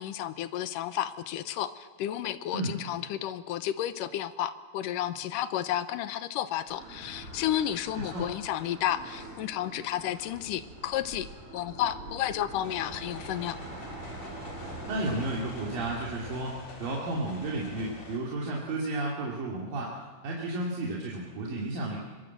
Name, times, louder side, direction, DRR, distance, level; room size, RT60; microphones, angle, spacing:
voice 1, 0.0-11.3 11.5-13.6, left 11 dB, 80° left, 13 dB, 2.5 m, -32 dB
sound 1, 6.7-16.2, right 2 dB, 40° right, 6.3 m, -45 dB
voice 2, 8.0-8.3 14.8-19.9 20.2-22.0, right 2 dB, 85° right, -3 dB, 4.4 m, -32 dB
sound 2, 12.6-18.2, left 1 dB, 50° left, 4.5 m, -44 dB
24.5 x 23.0 x 7.6 m, 1.4 s
omnidirectional pair, 3.8 m